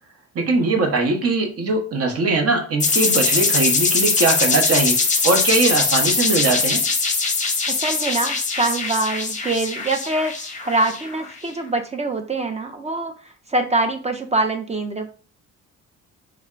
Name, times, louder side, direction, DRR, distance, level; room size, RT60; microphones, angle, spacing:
voice 1, 0.3-5.0 5.2-6.8, right 3 dB, 55° right, 4 dB, 0.9 m, -20 dB
sound 1, 2.8-11.3, left 4 dB, 25° left, 0.7 m, -21 dB
voice 2, 7.7-13.1 13.5-15.2, right 2 dB, 25° right, 6 dB, 0.4 m, -24 dB
3.3 x 2.1 x 3.7 m, 0.38 s
cardioid pair, 90°, 30 cm